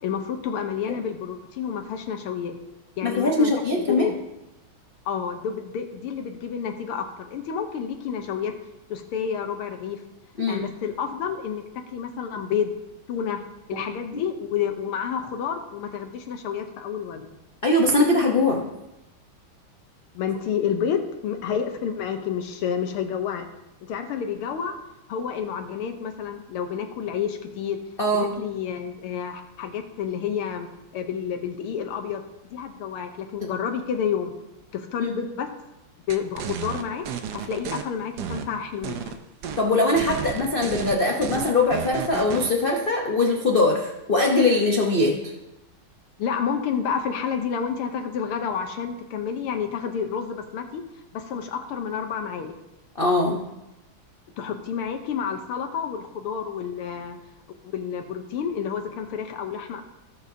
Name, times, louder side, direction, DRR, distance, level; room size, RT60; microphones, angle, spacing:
voice 1, 0.0-2.5 3.0-4.2 5.1-8.5 8.9-10.0 10.5-11.6 11.9-12.8 13.1-13.4 13.7-17.3 20.1-23.4 23.8-24.8 25.1-27.8 28.4-30.7 30.9-32.2 32.5-34.3 34.7-35.5 36.1-37.1 37.3-39.2 46.2-50.8 51.1-52.5 54.4-57.2 57.7-59.8, left 7 dB, 80° left, 5 dB, 1.7 m, -29 dB
voice 2, 3.0-4.1 10.4-10.6 14.1-14.2 17.6-18.6 28.0-28.3 35.0-35.1 39.6-45.3 53.0-53.4, left 2 dB, 45° left, 0 dB, 0.7 m, -21 dB
sound 1, 36.1-37.8 38.2-39.1 39.4-39.6 40.0-42.5, right 8 dB, 65° right, 1.1 m, -32 dB
18.0 x 6.6 x 2.7 m, 0.95 s
omnidirectional pair, 2.4 m